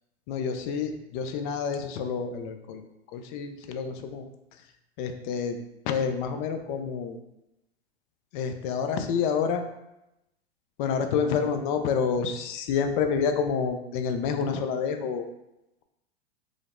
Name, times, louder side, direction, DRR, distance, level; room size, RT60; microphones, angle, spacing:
voice 1, 0.3-2.8 3.1-4.3 5.0-5.6 5.8-7.2 8.3-9.6 10.8-15.3, left 6 dB, 50° left, 7 dB, 0.6 m, -28 dB
5.0 x 2.0 x 3.7 m, 0.89 s
hypercardioid pair, 105°, 33 cm